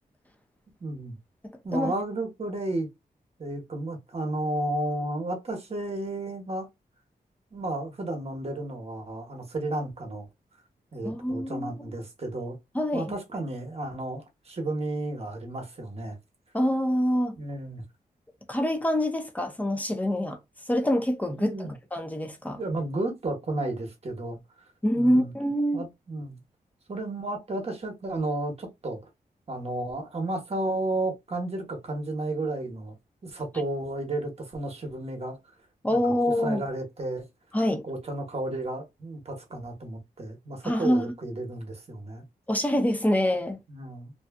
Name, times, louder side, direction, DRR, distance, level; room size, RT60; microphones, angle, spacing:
voice 1, 0.8-1.2 1.6-2.9 3.4-6.7 7.5-10.3 10.9-12.6 12.9-16.2 17.4-17.8 21.4-21.8 22.6-24.4 24.9-25.3 25.7-26.4 26.9-29.0 29.5-32.9 33.2-35.4 35.9-37.2 37.8-42.2 43.7-44.1, right 2 dB, 40° right, 1.0 m, -32 dB
voice 2, 11.0-11.8 12.7-13.1 16.5-17.4 18.5-20.4 20.7-21.6 21.9-22.6 24.8-25.8 35.8-36.6 37.5-37.8 40.6-41.1 42.5-43.6, equal, 10° left, 0.6 m, -25 dB
2.6 x 2.3 x 2.2 m
cardioid pair, 80°, 16 cm